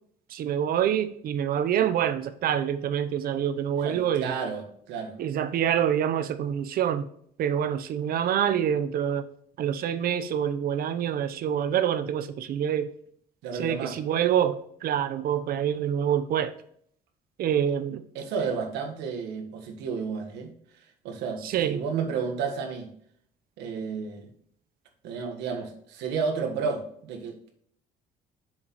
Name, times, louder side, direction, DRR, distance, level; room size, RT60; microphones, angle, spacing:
voice 1, 0.3-4.4 5.2-7.1 7.4-9.2 9.6-12.9 13.5-16.5 17.4-18.0 21.4-21.8, right 9 dB, 60° right, 11 dB, 0.8 m, -26 dB
voice 2, 3.8-5.2 13.4-13.9 18.1-20.5 21.0-22.9 23.6-24.3 25.0-27.5, right 5 dB, 90° right, 5 dB, 1.5 m, -32 dB
7.4 x 6.6 x 3.1 m, 0.66 s
cardioid pair, 110°, 17 cm